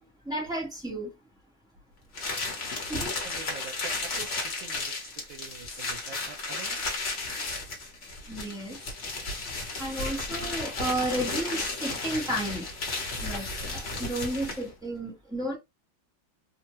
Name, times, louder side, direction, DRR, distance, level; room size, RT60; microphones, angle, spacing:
voice 1, 0.3-1.1 2.9-3.1 8.3-8.8 9.8-12.7 13.2-15.6, right 1 dB, 5° right, 0.6 m, -32 dB
sound 1, 2.1-14.7, left 3 dB, 40° left, 1.0 m, -34 dB
voice 2, 3.0-6.8, right 6 dB, 85° right, 1.4 m, -45 dB
3.3 x 2.1 x 2.9 m
omnidirectional pair, 2.1 m